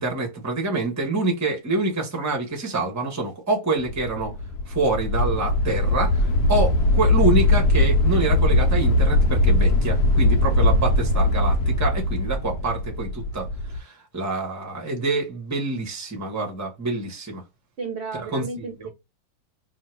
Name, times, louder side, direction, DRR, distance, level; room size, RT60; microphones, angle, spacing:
voice 1, 0.0-4.3 4.7-13.5 13.7-17.4 18.3-18.7, right 2 dB, 15° right, 0.6 m, -26 dB
sound 1, 3.8-13.8, left 1 dB, 70° left, 1.0 m, -20 dB
voice 2, 17.8-18.9, right 4 dB, 65° right, 0.6 m, -33 dB
2.9 x 2.6 x 4.4 m
omnidirectional pair, 2.1 m